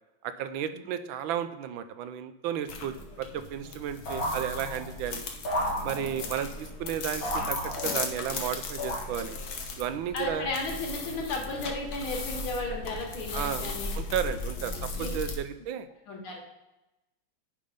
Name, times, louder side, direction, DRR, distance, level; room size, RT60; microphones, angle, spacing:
voice 1, 0.2-5.2 5.8-9.4 9.8-10.5 13.3-15.9, right 9 dB, 80° right, 11 dB, 1.3 m, -33 dB
sound 1, 2.7-15.4, left 3 dB, 55° left, 1.3 m, -37 dB
sound 2, 4.1-5.0 5.4-6.4 7.2-8.2 8.8-9.5, equal, 75° left, 2.9 m, -33 dB
voice 2, 10.1-13.9 15.0-15.1 16.1-16.4, left 3 dB, 90° left, -1 dB, 2.5 m, -34 dB
9.1 x 3.7 x 5.1 m, 0.98 s
omnidirectional pair, 2.2 m